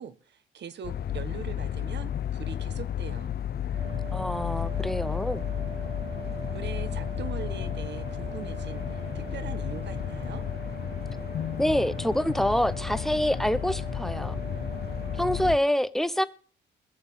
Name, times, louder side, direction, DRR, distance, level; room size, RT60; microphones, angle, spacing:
voice 1, 0.0-3.3 6.5-10.5, right 8 dB, 60° right, 1.5 m, -41 dB
sound 1, 0.8-15.6, left 10 dB, 50° left, 0.8 m, -33 dB
sound 2, 3.7-15.5, right 5 dB, 75° right, 6.4 m, -41 dB
voice 2, 4.1-5.4 11.6-14.3 15.2-16.2, equal, ahead, 0.9 m, -26 dB
21.0 x 7.1 x 7.1 m
cardioid pair, 90°, 20 cm